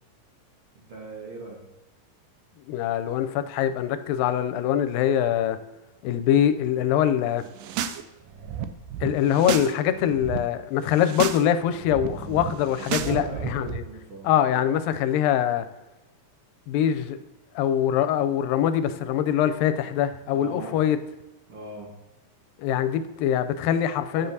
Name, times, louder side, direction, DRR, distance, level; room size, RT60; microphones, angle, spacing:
voice 1, 0.8-1.6 13.0-14.3 20.3-20.8 21.5-21.9 24.2-24.3, right 2 dB, 55° right, -2 dB, 1.8 m, -39 dB
voice 2, 2.7-5.6 6.0-7.4 9.0-13.8 14.2-15.7 16.7-17.2 17.6-21.0 22.6-24.3, left 10 dB, 90° left, 10 dB, 2.3 m, -23 dB
sound 1, 7.5-8.0 8.3-9.7 10.0-10.4 10.9-11.4 11.7-13.8, right 10 dB, 90° right, 2.3 m, -32 dB
10.0 x 7.6 x 2.7 m, 1.1 s
omnidirectional pair, 3.9 m